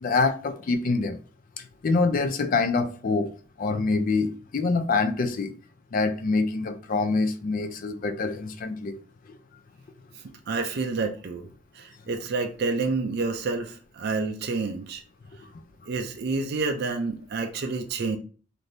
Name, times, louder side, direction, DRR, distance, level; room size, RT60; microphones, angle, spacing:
voice 1, 0.0-1.2 1.6-3.3 3.6-5.5 5.9-9.0 9.3-9.4, left 3 dB, 45° left, 0.3 m, -25 dB
voice 2, 10.5-11.5 11.7-15.0 15.9-18.2, right 3 dB, 55° right, 0.4 m, -29 dB
3.3 x 2.6 x 2.6 m
head